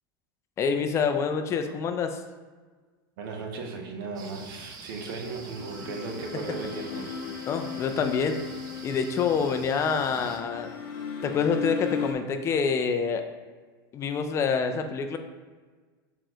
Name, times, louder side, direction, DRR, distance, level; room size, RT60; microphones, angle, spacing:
voice 1, 0.6-2.2 7.5-8.4 8.8-10.7 11.2-13.2 13.9-15.2, left 6 dB, 25° left, 7 dB, 0.4 m, -26 dB
voice 2, 3.2-7.1, right 4 dB, 65° right, 2 dB, 0.9 m, -36 dB
sound 1, 4.2-10.4, right 4 dB, 30° right, 0.6 m, -46 dB
sound 2, 5.2-12.1, left 6 dB, 60° left, 0.7 m, -37 dB
6.0 x 3.8 x 2.3 m, 1.4 s
supercardioid pair, 140°, 12 cm